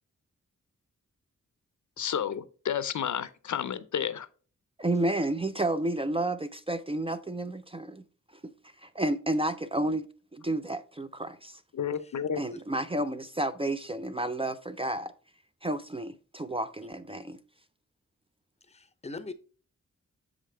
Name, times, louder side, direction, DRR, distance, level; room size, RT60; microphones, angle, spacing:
voice 1, 2.0-4.3 11.7-12.4, left 8 dB, 70° left, 0.6 m, -31 dB
voice 2, 4.8-8.0 8.8-10.1 10.3-11.6 12.4-15.1 15.6-17.4, right 1 dB, 20° right, 0.4 m, -31 dB
voice 3, 18.7-19.3, left 3 dB, 20° left, 0.6 m, -41 dB
7.3 x 5.0 x 3.2 m
wide cardioid pair, 110°, 30 cm